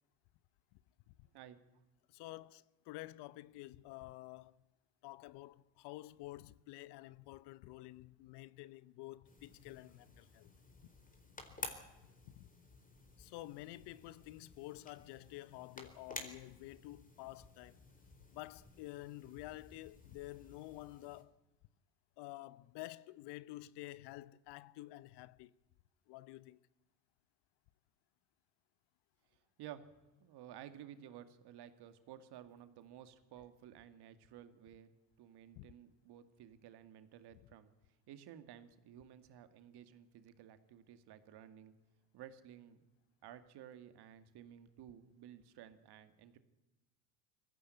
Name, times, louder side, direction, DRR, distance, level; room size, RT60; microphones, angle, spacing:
voice 1, 2.1-4.5 5.0-10.5 11.6-11.7 12.3-12.5 13.2-17.8 18.3-21.3 22.2-25.6 26.1-26.6 35.5-35.7, left 18 dB, 55° left, 0.9 m, -50 dB
sound 1, 9.2-21.2, left 2 dB, 15° left, 4.3 m, -53 dB
voice 2, 30.2-34.9 35.2-37.7 38.1-41.7 42.1-42.8 43.2-46.4, right 10 dB, 50° right, 2.2 m, -54 dB
21.5 x 15.5 x 10.0 m
hypercardioid pair, 75°, 50 cm